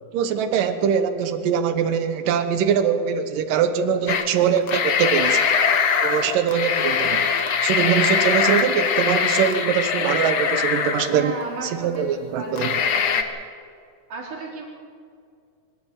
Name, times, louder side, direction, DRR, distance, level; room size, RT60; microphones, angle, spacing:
voice 1, 0.1-5.4 6.0-7.3 7.6-11.3 11.6-12.7, right 7 dB, 85° right, 9 dB, 2.8 m, -22 dB
sound 1, 4.1-4.3 4.6-11.4 11.9-12.0 12.6-13.2, left 6 dB, 55° left, 1.5 m, -22 dB
voice 2, 11.1-13.4 14.1-14.7, right 3 dB, 70° right, -3 dB, 5.6 m, -34 dB
23.5 x 13.5 x 9.1 m, 2.3 s
omnidirectional pair, 3.8 m